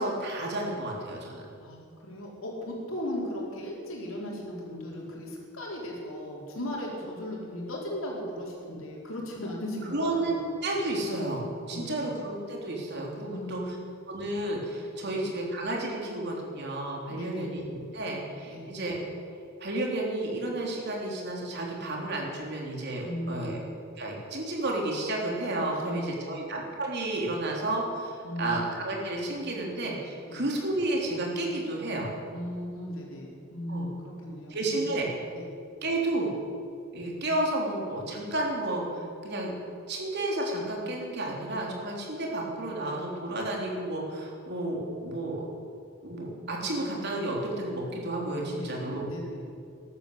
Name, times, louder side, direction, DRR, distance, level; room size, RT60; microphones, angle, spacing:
voice 1, 0.0-1.5 9.9-13.6 14.1-19.0 19.6-23.6 24.0-32.1 33.7-33.9 34.5-35.1 35.8-36.3 36.9-39.5 39.9-45.4 46.0-49.1, right 1 dB, 55° right, -1 dB, 3.5 m, -31 dB
voice 2, 1.6-10.4 11.7-12.0 13.3-13.7 15.0-15.2 17.1-17.5 18.5-18.7 23.0-23.6 25.7-26.4 28.2-28.6 30.3-30.4 32.3-34.9 35.3-35.5 48.5-49.4, left 1 dB, 80° left, -2 dB, 4.3 m, -37 dB
14.5 x 12.0 x 8.2 m, 2.3 s
head